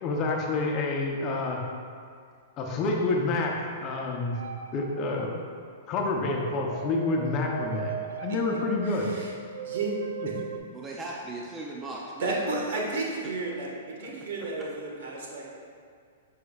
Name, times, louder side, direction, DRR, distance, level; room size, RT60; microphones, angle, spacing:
voice 1, 0.0-1.6 2.6-3.5 3.8-4.4 4.7-5.3 5.9-9.1, left 3 dB, 35° left, 0 dB, 0.8 m, -28 dB
sound 1, 4.3-5.3 6.2-10.6, right 6 dB, 85° right, 0.5 m, -38 dB
voice 2, 8.8-9.3 9.6-9.9 10.2-10.4 12.2-15.4, right 3 dB, 70° right, -2 dB, 1.6 m, -32 dB
voice 3, 10.7-12.7 13.2-13.3 14.0-14.1 14.6-14.7, right 2 dB, 15° right, -3 dB, 0.6 m, -38 dB
8.1 x 5.8 x 2.4 m, 2.1 s
hypercardioid pair, 140°, 0 cm